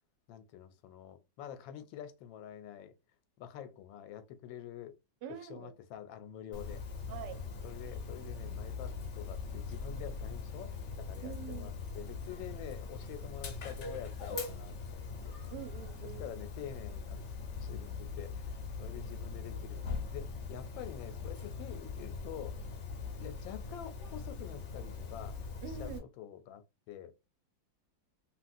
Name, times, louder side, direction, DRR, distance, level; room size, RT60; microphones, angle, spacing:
voice 1, 0.3-2.9 3.4-4.9 5.3-6.8 7.6-15.3 16.0-17.2 17.6-22.6 23.2-25.4 25.7-27.1, left 10 dB, 85° left, 1.3 m, -47 dB
voice 2, 5.2-5.7 7.1-7.4 11.2-11.7 15.5-16.2 25.6-26.0, right 9 dB, 75° right, 1.1 m, -44 dB
Dog, 6.5-26.0, left 4 dB, 60° left, 0.7 m, -41 dB
2.9 x 2.9 x 2.5 m
omnidirectional pair, 2.0 m